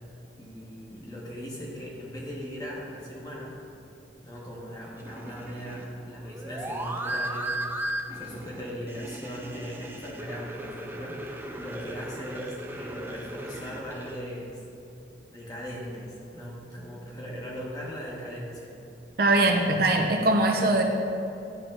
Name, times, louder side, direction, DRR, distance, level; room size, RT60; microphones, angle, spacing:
voice 1, 0.4-3.6 4.2-7.6 8.1-11.2 11.6-14.6 15.3-18.7 19.2-20.2, equal, 20° left, -4 dB, 1.2 m, -39 dB
sound 1, 5.0-14.2, right 1 dB, 10° right, 0.4 m, -36 dB
voice 2, 19.2-20.8, right 2 dB, 55° right, 3 dB, 0.6 m, -22 dB
11.5 x 4.9 x 2.5 m, 2.8 s
head